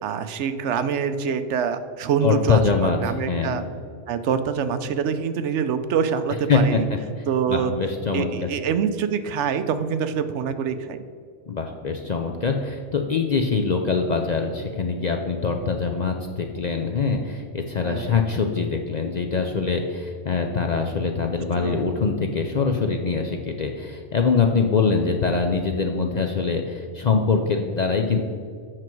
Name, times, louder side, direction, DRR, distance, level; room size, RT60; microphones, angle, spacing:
voice 1, 0.0-3.6 4.1-6.9 7.3-7.7 8.1-11.0 17.8-18.3 21.6-21.9, right 7 dB, 75° right, 10 dB, 0.9 m, -25 dB
voice 2, 2.2-3.6 6.5-6.8 7.5-8.5 11.5-28.2, left 5 dB, 50° left, 3 dB, 0.5 m, -23 dB
7.7 x 6.0 x 4.5 m, 2.2 s
omnidirectional pair, 1.2 m